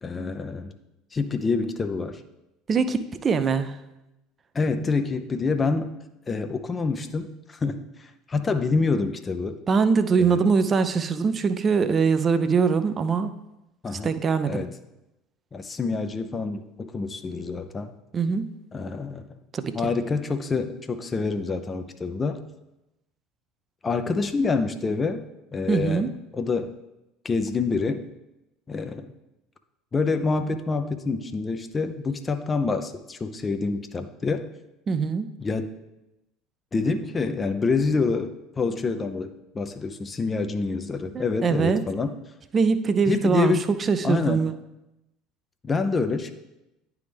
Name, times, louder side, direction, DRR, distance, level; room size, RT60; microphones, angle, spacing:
voice 1, 0.0-0.7 1.1-2.2 4.5-6.0 6.3-9.6 10.2-10.5 13.8-14.2 14.5-14.7 15.5-17.9 18.7-19.2 19.7-22.4 23.8-25.2 25.5-26.0 26.3-26.7 27.2-28.0 28.7-29.1 29.9-34.5 35.4-35.7 36.7-42.1 43.1-43.7 44.0-44.4 45.6-46.3, left 4 dB, 25° left, 8 dB, 0.5 m, -27 dB
voice 2, 2.7-3.8 9.7-13.3 14.0-14.7 18.1-18.5 19.5-19.7 25.7-26.1 34.9-35.3 41.1-41.8 42.5-43.5 43.8-44.5, right 5 dB, 30° right, 11 dB, 0.4 m, -22 dB
10.0 x 3.5 x 3.4 m, 0.92 s
figure-of-eight pair, 65°, 0 cm